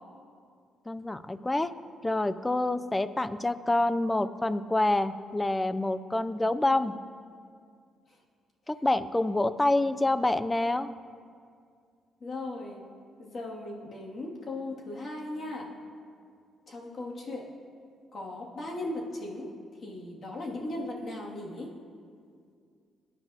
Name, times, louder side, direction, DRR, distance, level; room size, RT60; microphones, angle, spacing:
voice 1, 0.9-1.7 2.0-6.9 8.7-10.9, left 2 dB, 15° left, 13 dB, 0.5 m, -27 dB
voice 2, 12.2-12.8 13.2-15.7 16.7-17.5 18.1-19.5 19.8-21.7, left 2 dB, 45° left, -3 dB, 2.5 m, -37 dB
20.0 x 10.0 x 2.9 m, 2.2 s
cardioid pair, 90°, 0 cm